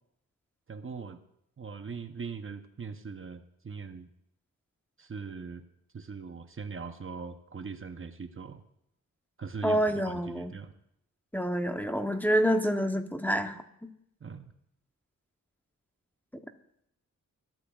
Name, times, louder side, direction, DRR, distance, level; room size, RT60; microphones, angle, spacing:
voice 1, 0.7-1.2 1.6-4.1 5.0-5.6 5.9-8.6 9.4-10.7 14.2-14.5, right 5 dB, 40° right, 8 dB, 0.8 m, -41 dB
voice 2, 9.6-10.5 11.3-13.9, equal, 5° left, 5 dB, 0.8 m, -28 dB
21.5 x 12.0 x 2.4 m, 0.77 s
wide cardioid pair, 105°, 33 cm